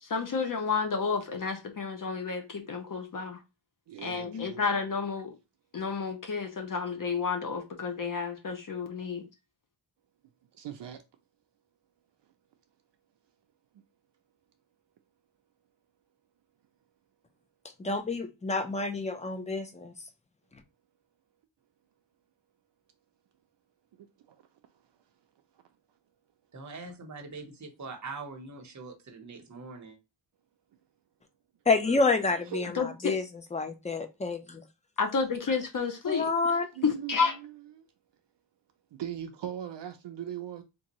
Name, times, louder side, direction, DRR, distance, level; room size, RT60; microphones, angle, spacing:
voice 1, 0.0-3.4 4.0-5.3 5.7-9.3 32.7-33.1 35.0-36.3 36.8-37.3, left 5 dB, 45° left, 0.7 m, -31 dB
voice 2, 3.9-4.6 10.6-11.0 24.0-24.4 26.8-27.0 27.8-27.9 32.5-32.7 36.8-37.5 37.7-37.9 38.9-40.6, right 10 dB, 60° right, 0.5 m, -40 dB
voice 3, 17.8-19.9 31.7-33.2 33.5-34.6 36.1-36.7, left 3 dB, 15° left, 0.4 m, -28 dB
voice 4, 26.5-30.0, right 4 dB, 35° right, 1.0 m, -43 dB
3.7 x 2.6 x 2.9 m
wide cardioid pair, 135°, 48 cm